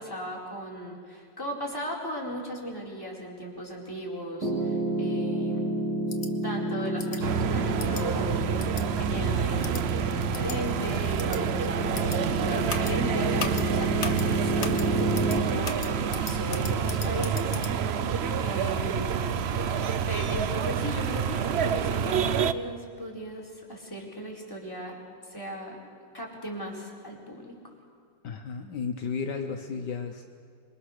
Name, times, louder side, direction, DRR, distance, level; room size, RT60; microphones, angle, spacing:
voice 1, 0.0-5.7 6.4-19.3 20.1-27.6, equal, 10° left, -3 dB, 4.5 m, -37 dB
Piano, 4.4-15.4, right 1 dB, 60° right, 3.8 m, -31 dB
sound 1, 6.1-6.3 7.0-7.2 7.8-8.0 8.6-8.8 9.6-9.8 10.3-10.6 11.2-11.4 11.9-12.2 12.7-12.9 13.4-13.6 14.0-14.2 14.6-14.8 15.1-15.4 15.6-17.7, left 5 dB, 40° left, 1.5 m, -36 dB
sound 2, 7.2-22.5, right 7 dB, 85° right, 0.5 m, -28 dB
voice 2, 28.2-30.2, left 5 dB, 70° left, 5 dB, 1.6 m, -33 dB
26.5 x 23.0 x 6.6 m, 2.2 s
omnidirectional pair, 2.0 m